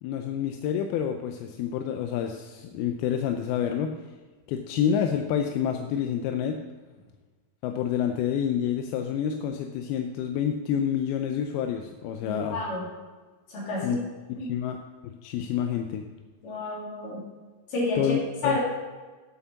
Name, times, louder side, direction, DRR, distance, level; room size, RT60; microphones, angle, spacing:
voice 1, 0.0-3.9 4.5-6.6 7.6-12.6 13.8-14.0 14.4-14.8 15.2-16.0 18.0-18.6, left 9 dB, 85° left, 5 dB, 2.5 m, -28 dB
voice 2, 12.2-12.9 13.5-14.0 14.4-14.5 16.4-17.2 17.7-18.1 18.4-18.6, left 2 dB, 60° left, -5 dB, 4.5 m, -30 dB
8.8 x 7.2 x 7.0 m, 1.3 s
omnidirectional pair, 4.4 m